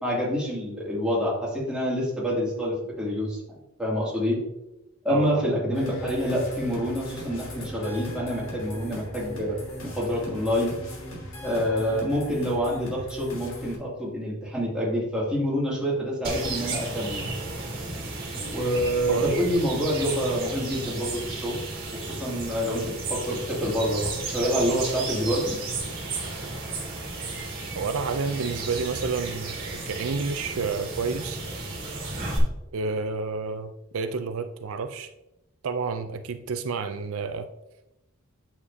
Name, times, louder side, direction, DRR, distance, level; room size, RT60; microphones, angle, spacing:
voice 1, 0.0-3.4 3.8-4.4 5.0-9.6 9.8-10.7 11.4-17.3 18.5-21.6 22.0-25.6, equal, 5° right, -6 dB, 2.4 m, -27 dB
voice 2, 5.1-5.4 19.1-19.3 27.7-31.4 32.7-35.1 35.6-37.5, right 4 dB, 70° right, 9 dB, 0.4 m, -29 dB
sound 1, 5.7-13.8, equal, 60° left, 2.1 m, -39 dB
sound 2, 16.2-32.4, right 3 dB, 40° right, 2.4 m, -33 dB
8.7 x 7.2 x 2.8 m, 0.93 s
head